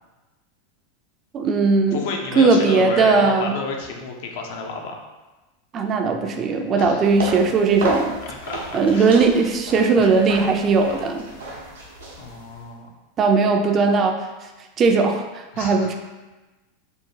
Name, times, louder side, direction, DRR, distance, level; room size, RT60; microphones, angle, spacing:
voice 1, 1.3-2.0 2.4-3.5 5.7-8.1 8.7-11.3 13.2-14.2 14.8-15.9, right 4 dB, 35° right, 4 dB, 0.3 m, -18 dB
voice 2, 1.9-5.0 6.8-7.1 8.2-9.2 10.0-10.1 12.2-12.9 15.5-15.9, left 3 dB, 65° left, 2 dB, 0.4 m, -31 dB
sound 1, 7.0-12.7, right 2 dB, 90° right, 0.6 m, -33 dB
2.7 x 2.0 x 2.7 m, 1.2 s
hypercardioid pair, 110°, 0 cm